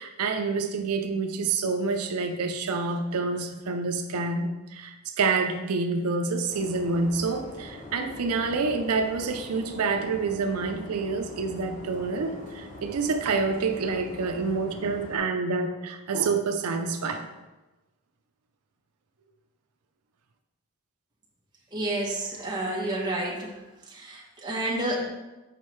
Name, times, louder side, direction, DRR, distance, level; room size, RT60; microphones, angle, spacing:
voice 1, 0.0-17.3, right 4 dB, 85° right, 6 dB, 0.5 m, -28 dB
sound 1, 6.5-15.2, left 1 dB, 35° left, 1.3 m, -43 dB
voice 2, 21.7-23.6 23.9-25.1, right 1 dB, 20° right, -3 dB, 1.1 m, -30 dB
7.3 x 5.3 x 3.2 m, 1.1 s
head